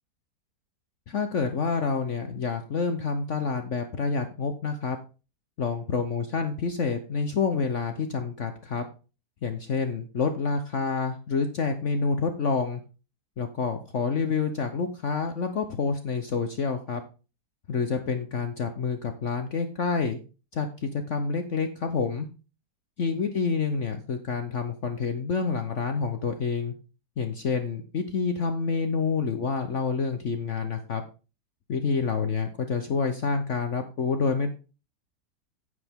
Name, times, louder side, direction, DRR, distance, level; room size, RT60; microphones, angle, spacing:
voice 1, 1.1-5.0 5.6-8.9 9.4-12.8 13.4-17.0 17.7-20.2 20.5-22.3 23.0-26.7 27.2-31.0 31.7-34.5, left 5 dB, 50° left, 7 dB, 1.1 m, -28 dB
9.7 x 8.2 x 3.6 m, 0.32 s
omnidirectional pair, 1.8 m